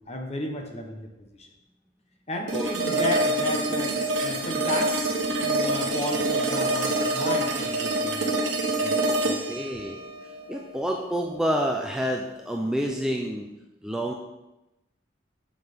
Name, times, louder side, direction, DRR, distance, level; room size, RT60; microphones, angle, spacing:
voice 1, 0.1-1.5 2.3-5.1 5.4-8.3 8.8-9.0 9.2-9.6, left 1 dB, 35° left, 3 dB, 1.1 m, -33 dB
sound 1, 2.5-11.5, right 2 dB, 80° right, 1.1 m, -26 dB
voice 2, 9.1-10.0 10.5-13.5 13.8-14.1, equal, 5° right, 0 dB, 0.5 m, -28 dB
7.7 x 7.7 x 3.6 m, 0.98 s
head